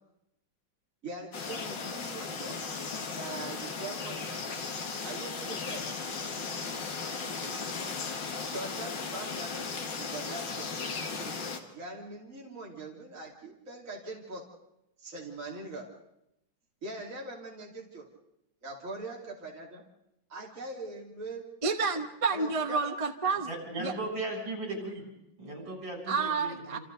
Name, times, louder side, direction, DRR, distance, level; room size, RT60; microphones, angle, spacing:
voice 1, 1.0-2.6 3.1-4.6 5.0-5.8 8.5-14.4 15.0-15.9 16.8-18.1 18.6-19.8 20.3-21.4 22.3-22.8, right 2 dB, 40° right, -2 dB, 3.4 m, -42 dB
sound 1, 1.3-11.6, left 4 dB, 70° left, 2.5 m, -36 dB
voice 2, 21.6-23.5 23.8-23.9 26.1-26.8, right 4 dB, 20° right, 5 dB, 1.0 m, -29 dB
voice 3, 23.5-25.1 25.4-26.8, right 2 dB, 75° right, -1 dB, 8.0 m, -37 dB
28.5 x 27.5 x 4.0 m, 0.84 s
omnidirectional pair, 2.1 m